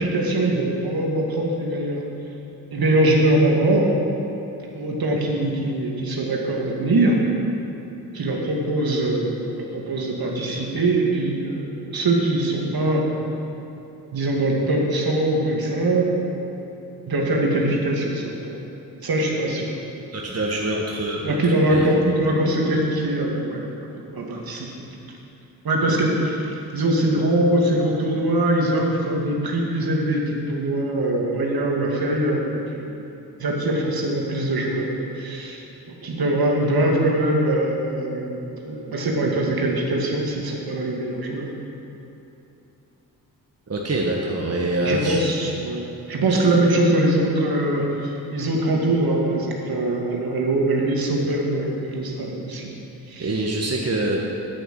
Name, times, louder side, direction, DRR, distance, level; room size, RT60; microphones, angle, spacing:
voice 1, 0.0-2.0 2.7-3.9 4.7-7.2 8.1-13.0 14.0-16.7 17.1-18.6 19.0-19.7 21.2-24.9 25.6-33.0 33.4-34.9 35.1-35.6 35.9-41.5 44.8-52.7 53.1-53.5, right 1 dB, 60° right, -1 dB, 2.4 m, -22 dB
voice 2, 20.1-21.9 43.7-45.2 46.3-46.4 53.2-54.3, right 1 dB, 35° right, -2 dB, 1.7 m, -25 dB
9.4 x 9.0 x 7.7 m, 2.9 s
supercardioid pair, 45°, 42 cm